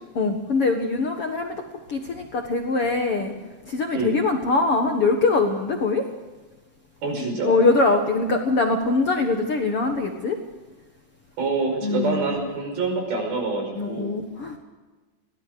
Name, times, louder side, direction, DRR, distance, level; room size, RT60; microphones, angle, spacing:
voice 1, 0.1-1.6 1.9-3.3 3.7-6.1 7.2-10.4 11.8-12.3 13.8-14.6, left 3 dB, 55° left, 4 dB, 1.6 m, -23 dB
voice 2, 7.0-7.6 11.4-14.2, right 3 dB, 65° right, 3 dB, 7.2 m, -26 dB
22.5 x 18.0 x 6.6 m, 1.3 s
omnidirectional pair, 4.7 m